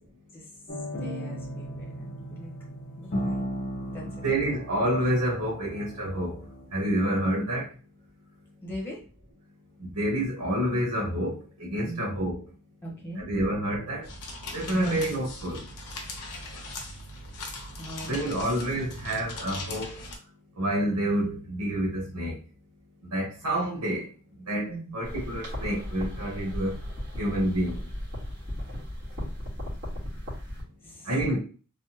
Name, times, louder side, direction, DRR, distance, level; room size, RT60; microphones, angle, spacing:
sound 1, 0.7-6.7, equal, 40° left, 0.6 m, -36 dB
voice 1, 1.0-2.5 3.0-3.5 3.9-4.1 8.6-9.0 11.8-12.1 12.8-13.3 14.7-15.0 17.8-18.5 24.7-25.0 30.8-31.3, right 1 dB, 10° left, 0.9 m, -39 dB
voice 2, 4.2-6.4 6.7-7.7 9.8-12.5 13.2-14.1 14.5-15.7 18.0-20.0 20.6-22.4 23.1-24.1 24.4-26.8 27.2-27.8 31.0-31.4, right 1 dB, 90° right, 1.0 m, -28 dB
sound 2, 14.0-20.2, left 2 dB, 80° left, 0.8 m, -40 dB
sound 3, 25.0-30.6, left 1 dB, 50° right, 1.6 m, -36 dB
3.4 x 2.1 x 2.8 m
head